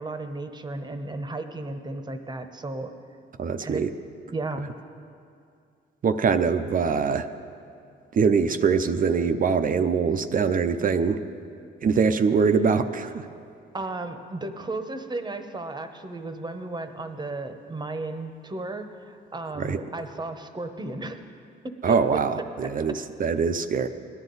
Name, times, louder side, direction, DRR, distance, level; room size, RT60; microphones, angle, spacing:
voice 1, 0.0-2.9 3.6-3.9 4.3-4.7 13.7-21.2 21.6-22.2 22.6-22.7, right 2 dB, 20° right, 8 dB, 1.0 m, -34 dB
voice 2, 3.4-3.9 6.0-7.3 8.1-11.2 11.8-13.3 19.6-19.8 21.8-23.9, right 5 dB, 45° right, 9 dB, 0.6 m, -23 dB
18.0 x 11.0 x 4.0 m, 2.4 s
cardioid pair, 90°, 20 cm